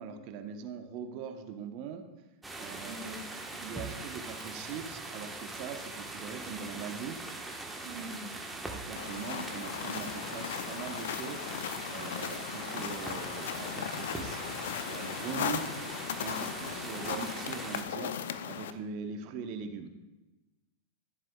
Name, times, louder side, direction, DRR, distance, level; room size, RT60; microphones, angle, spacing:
voice 1, 0.0-2.1 2.5-3.1 3.6-7.2 8.0-8.1 8.7-11.5 11.9-15.7 16.2-18.1 18.5-19.9, right 6 dB, 50° right, 6 dB, 0.9 m, -41 dB
sound 1, 2.4-17.8, right 2 dB, 10° right, 1.2 m, -41 dB
voice 2, 2.9-3.8 7.8-8.3, right 1 dB, 80° right, -6 dB, 2.2 m, -44 dB
sound 2, 9.0-18.7, left 8 dB, 70° left, 0.5 m, -37 dB
13.0 x 7.3 x 2.3 m, 1.1 s
hypercardioid pair, 100°, 0 cm